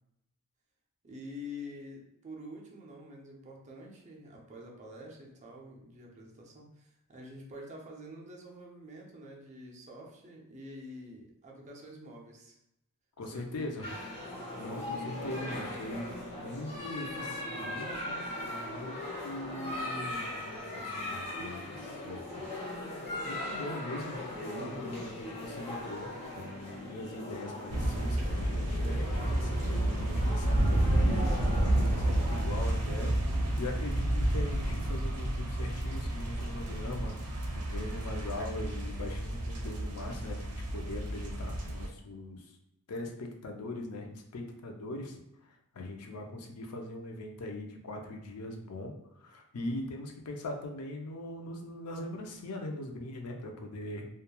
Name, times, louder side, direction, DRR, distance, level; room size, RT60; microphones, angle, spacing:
voice 1, 1.0-12.6 13.3-13.9 24.5-25.0, left 1 dB, 35° right, -1 dB, 0.5 m, -47 dB
voice 2, 13.2-13.9 14.5-22.5 23.2-33.1 33.6-37.2 37.5-42.5 42.9-54.1, left 2 dB, 90° left, 2 dB, 0.5 m, -41 dB
sound 1, 13.8-32.4, left 1 dB, 30° left, 0.7 m, -39 dB
sound 2, 27.7-41.9, right 1 dB, 85° right, 0.5 m, -30 dB
2.9 x 2.2 x 2.2 m, 0.82 s
head